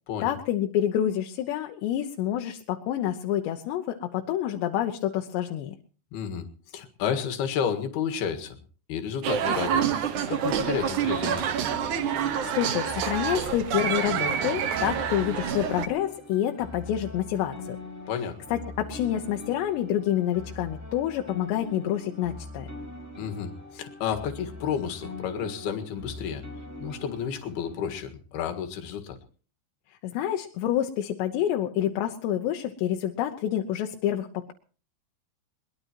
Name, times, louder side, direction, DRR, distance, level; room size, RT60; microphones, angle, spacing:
voice 1, 0.2-5.7 12.4-17.8 18.5-22.7 30.0-34.5, left 11 dB, 85° left, 4 dB, 3.2 m, -28 dB
voice 2, 6.1-6.5 6.7-8.6 8.9-9.9 10.3-11.6 18.1-18.4 23.2-26.4 26.8-29.2, left 8 dB, 70° left, 6 dB, 3.6 m, -31 dB
sound 1, 9.2-15.9, right 8 dB, 60° right, 2.2 m, -27 dB
sound 2, 11.5-27.7, left 2 dB, 5° right, 5.2 m, -42 dB
22.0 x 21.5 x 3.0 m, 0.40 s
omnidirectional pair, 4.9 m